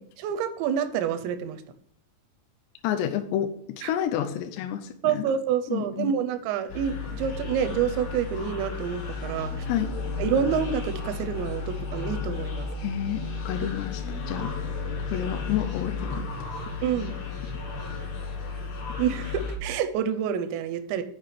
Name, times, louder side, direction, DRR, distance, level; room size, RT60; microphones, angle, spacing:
voice 1, 0.2-1.6 3.8-3.9 5.0-9.5 10.2-12.7 13.6-13.7 16.8-17.2 19.0-21.0, right 8 dB, 80° right, 10 dB, 2.8 m, -28 dB
voice 2, 2.8-3.5 3.8-5.3 5.7-6.1 9.7-9.9 12.8-14.5 15.1-16.3, left 10 dB, 80° left, 5 dB, 2.6 m, -29 dB
sound 1, 6.7-19.6, left 4 dB, 65° left, 3.3 m, -33 dB
6.7 x 6.6 x 5.8 m, 0.69 s
omnidirectional pair, 5.5 m